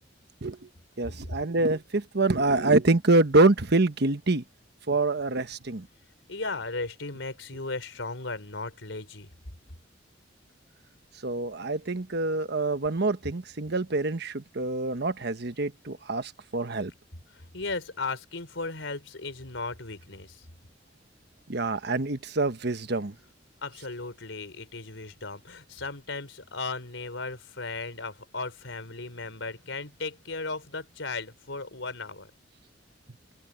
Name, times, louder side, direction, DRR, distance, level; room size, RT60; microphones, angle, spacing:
voice 1, 1.0-4.4 4.9-5.9 11.2-16.9 21.5-23.1, right 2 dB, 60° right, 1.3 m, -25 dB
voice 2, 6.3-9.3 17.3-20.5 23.6-32.3, left 3 dB, 80° left, 4.1 m, -36 dB
head